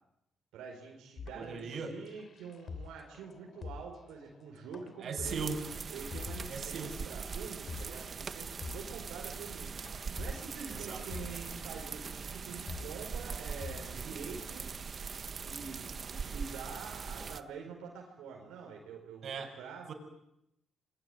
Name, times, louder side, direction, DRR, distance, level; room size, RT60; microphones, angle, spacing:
voice 1, 0.5-5.5 5.9-9.7 10.1-14.7 15.3-19.9, right 5 dB, 85° right, 0 dB, 4.9 m, -46 dB
sound 1, 1.2-6.7 7.0-7.1 7.5-8.0 8.3-8.4 8.6-9.1 9.6-9.7 9.9-11.7 12.2-12.3 12.5-13.0 13.3-14.0, left 5 dB, 55° left, 3.2 m, -46 dB
voice 2, 1.3-2.0 5.0-5.6 6.5-7.0 10.7-11.0 19.2-19.5 19.9-20.0, right 5 dB, 65° right, 5 dB, 6.3 m, -38 dB
sound 2, 5.2-17.4, right 5 dB, 50° right, 1.4 m, -41 dB
28.0 x 22.0 x 9.4 m, 0.82 s
supercardioid pair, 70°, 0 cm